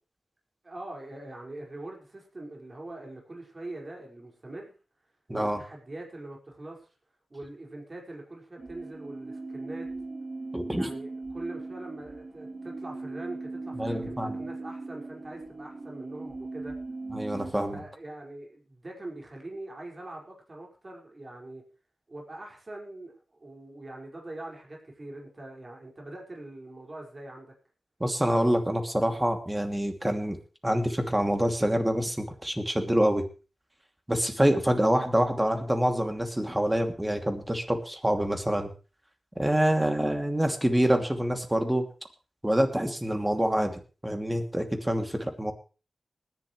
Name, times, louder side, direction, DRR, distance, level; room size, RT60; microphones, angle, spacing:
voice 1, 0.6-4.7 5.3-6.9 7.3-9.9 10.7-16.7 17.7-21.6 22.1-27.5, right 2 dB, 40° right, 0 dB, 5.6 m, -43 dB
sound 1, 8.6-17.5, right 3 dB, 60° right, 3.9 m, -39 dB
voice 2, 10.5-10.9 13.8-14.4 17.1-17.8 28.0-30.4 30.6-33.2 34.1-38.7 39.4-41.8 42.4-45.5, right 1 dB, 15° right, 5 dB, 2.8 m, -26 dB
20.0 x 11.0 x 3.3 m, 0.34 s
cardioid pair, 50°, 0 cm